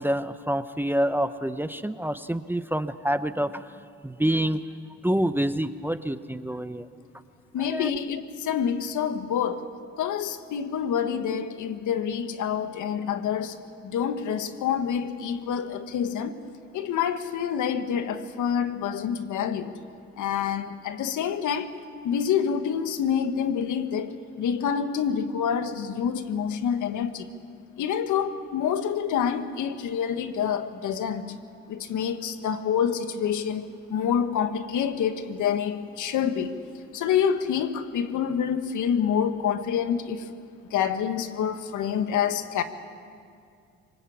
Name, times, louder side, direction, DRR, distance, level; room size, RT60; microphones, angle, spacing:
voice 1, 0.0-4.6 5.0-6.9 7.6-7.9, right 1 dB, 5° right, 0.7 m, -27 dB
voice 2, 7.5-9.7 10.0-13.6 13.8-16.4 16.7-19.7 20.2-21.8 22.0-27.3 27.8-31.3 31.7-36.5 36.9-40.3 40.7-42.6, left 8 dB, 80° left, 1.5 m, -27 dB
23.5 x 20.0 x 8.5 m
cardioid pair, 90°, 30 cm